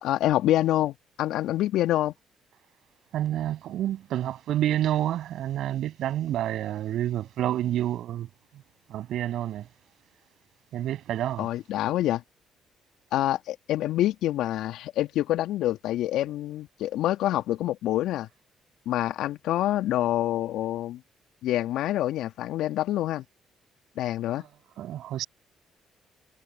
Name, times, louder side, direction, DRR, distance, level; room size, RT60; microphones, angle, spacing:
voice 1, 0.0-2.1 11.4-12.2 13.1-18.3 18.9-21.0 21.4-23.2 24.0-24.4, left 14 dB, 70° left, 2.1 m, -26 dB
voice 2, 3.1-8.3 8.9-9.7 10.7-11.5 24.8-25.3, right 12 dB, 65° right, 6.4 m, -28 dB
hypercardioid pair, 50°, 0 cm